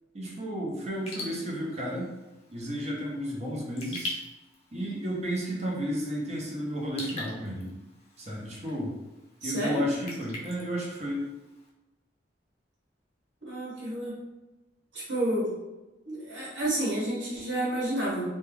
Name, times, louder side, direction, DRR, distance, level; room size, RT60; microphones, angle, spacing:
voice 1, 0.1-2.1 2.5-4.2 4.7-7.7 8.2-9.0 9.4-11.3, equal, 35° right, -4 dB, 0.6 m, -32 dB
Raindrop / Drip, 0.9-11.7, left 1 dB, 35° left, 0.5 m, -44 dB
voice 2, 9.4-9.8 13.4-14.1 14.9-15.5 16.0-18.2, right 1 dB, 80° right, -7 dB, 1.1 m, -30 dB
2.2 x 2.2 x 3.2 m, 1.0 s
head